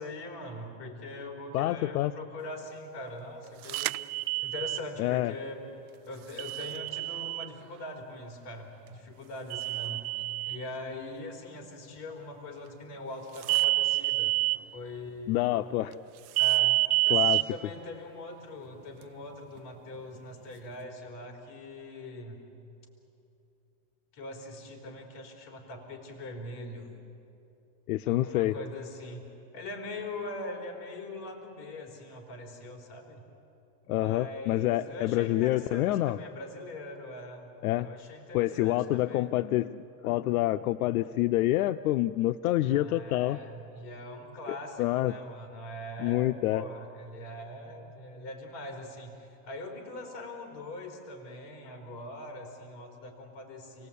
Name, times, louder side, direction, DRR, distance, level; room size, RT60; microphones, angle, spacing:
voice 1, 0.0-3.9 4.4-5.7 6.0-10.1 10.5-14.4 14.7-15.8 16.4-22.4 24.1-26.9 28.0-29.3 29.5-33.2 33.9-39.3 42.6-53.9, left 1 dB, 35° left, 2 dB, 3.7 m, -42 dB
voice 2, 1.5-2.1 5.0-5.3 15.3-15.9 17.1-17.4 27.9-28.6 33.9-36.2 37.6-37.9 38.3-43.4 44.5-45.1 46.0-46.6, left 15 dB, 65° left, 11 dB, 0.6 m, -27 dB
sound 1, 3.7-4.8 6.4-7.5 9.5-10.6 13.4-14.6 16.4-17.4, right 20 dB, 65° right, 0.6 m, -27 dB
29.0 x 19.0 x 8.5 m, 2.8 s
supercardioid pair, 160°, 46 cm